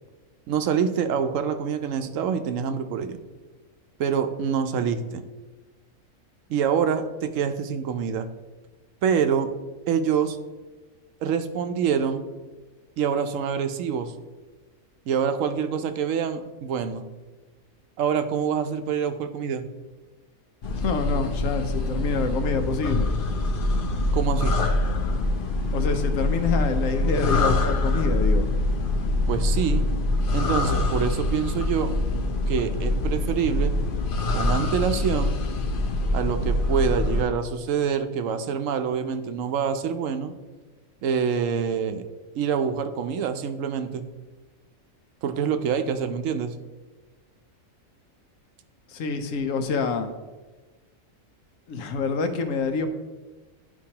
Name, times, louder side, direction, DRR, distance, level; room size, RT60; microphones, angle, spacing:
voice 1, 0.5-3.2 4.0-5.2 6.5-8.3 9.0-9.5 9.9-10.4 11.2-12.2 13.0-14.1 15.1-17.1 18.0-19.7 24.1-24.6 29.3-29.8 30.3-31.9 32.5-33.7 34.3-35.4 36.1-40.3 41.0-42.0 42.3-44.1 45.2-46.5, right 7 dB, 75° right, 8 dB, 1.0 m, -26 dB
sound 1, 20.6-37.2, left 2 dB, 50° left, 0.7 m, -24 dB
voice 2, 20.8-23.1 25.7-28.5 48.9-50.1 51.7-52.9, left 4 dB, 75° left, 7 dB, 1.1 m, -26 dB
11.5 x 4.6 x 2.8 m, 1.2 s
omnidirectional pair, 1.4 m